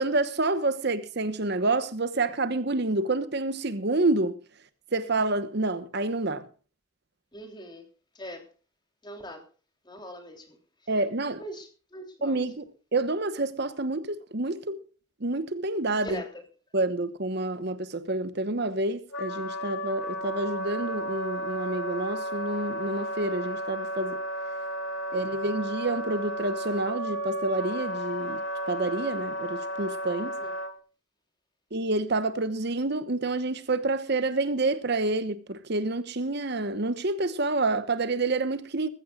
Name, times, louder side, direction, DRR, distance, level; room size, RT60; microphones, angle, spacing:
voice 1, 0.0-4.3 4.9-6.5 10.9-11.4 12.2-12.6 12.9-14.8 15.2-16.1 16.7-24.2 25.1-28.4 28.7-30.3 31.7-38.9, right 2 dB, 55° right, 1.1 m, -28 dB
voice 2, 7.3-7.8 8.1-8.4 9.0-9.4 9.8-10.6 11.4-12.4 16.0-16.4 30.4-30.5, equal, 20° left, 3.2 m, -41 dB
Wind instrument woodwind instrument, 19.1-30.7, right 1 dB, 75° left, 2.3 m, -33 dB
20.0 x 15.0 x 2.4 m
head